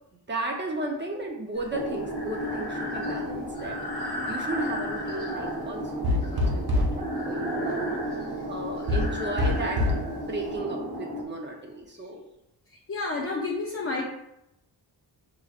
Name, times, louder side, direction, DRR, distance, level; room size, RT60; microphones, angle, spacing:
voice 1, 0.3-8.1 8.5-9.9 10.1-12.2, right 2 dB, 25° right, 1 dB, 0.8 m, -35 dB
Breathing, 1.6-10.6, left 1 dB, 65° left, 1.1 m, -38 dB
sound 1, 1.7-11.2, equal, 85° right, 1.1 m, -33 dB
sound 2, 6.0-7.0 8.9-10.1, left 2 dB, 60° right, 0.9 m, -25 dB
voice 2, 12.9-14.0, left 3 dB, 35° left, -2 dB, 0.6 m, -29 dB
6.3 x 3.0 x 2.5 m, 0.83 s
wide cardioid pair, 135°, 42 cm